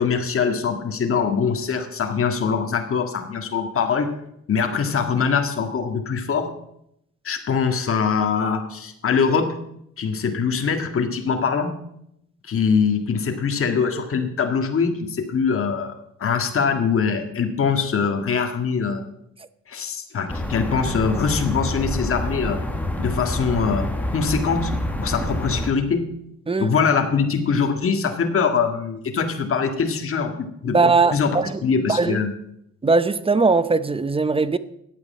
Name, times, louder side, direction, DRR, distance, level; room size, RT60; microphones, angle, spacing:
voice 1, 0.0-4.1 4.5-6.5 7.2-9.5 10.0-11.7 12.5-19.0 19.7-22.6 23.0-24.7 25.0-26.1 26.6-30.8 31.1-31.4 31.6-32.3, left 6 dB, 45° left, 1.8 m, -23 dB
sound 1, 20.3-25.7, left 1 dB, 5° left, 1.7 m, -27 dB
voice 2, 30.7-31.6 31.9-32.2 32.8-34.6, right 4 dB, 20° right, 0.7 m, -19 dB
11.0 x 8.9 x 7.3 m
cardioid pair, 90°, 30 cm